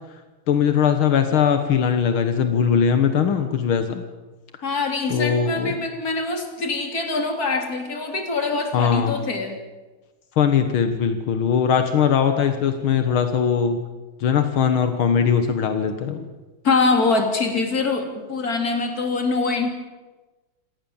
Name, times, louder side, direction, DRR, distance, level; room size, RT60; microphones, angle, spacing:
voice 1, 0.5-4.0 5.1-5.8 8.7-9.2 10.4-13.9 14.2-16.2, left 7 dB, 85° left, 7 dB, 2.2 m, -20 dB
voice 2, 4.6-9.6 16.6-19.7, left 3 dB, 45° left, 4 dB, 3.5 m, -24 dB
27.0 x 18.5 x 7.2 m, 1.2 s
omnidirectional pair, 2.2 m